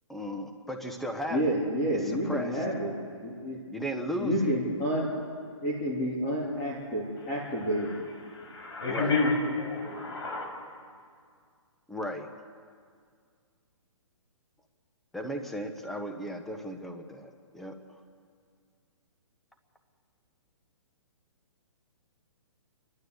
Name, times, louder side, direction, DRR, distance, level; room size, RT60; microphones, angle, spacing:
voice 1, 0.1-1.4 1.9-2.6 3.7-4.5 8.9-9.2 11.9-12.3 15.1-17.8, equal, ahead, 4 dB, 0.9 m, -35 dB
voice 2, 1.3-2.9 3.2-3.6 4.2-5.1 5.6-8.0, equal, 20° left, -5 dB, 3.0 m, -29 dB
voice 3, 8.3-10.5, left 3 dB, 55° left, 1 dB, 6.8 m, -29 dB
29.0 x 12.0 x 8.0 m, 2.1 s
hypercardioid pair, 165°, 16 cm